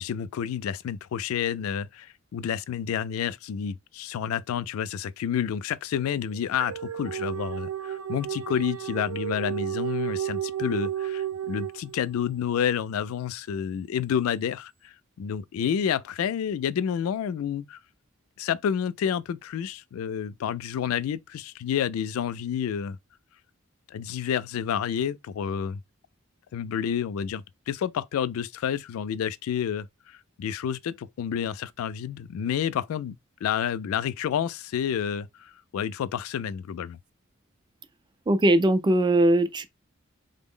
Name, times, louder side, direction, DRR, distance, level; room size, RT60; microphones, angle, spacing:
voice 1, 0.0-17.8 18.4-23.0 23.9-25.8 26.5-33.2 33.4-37.0, left 8 dB, 75° left, 0.3 m, -29 dB
sound 1, 5.9-12.3, right 10 dB, 80° right, 0.5 m, -32 dB
voice 2, 38.3-39.7, right 1 dB, 20° right, 0.3 m, -20 dB
3.8 x 2.0 x 3.6 m
head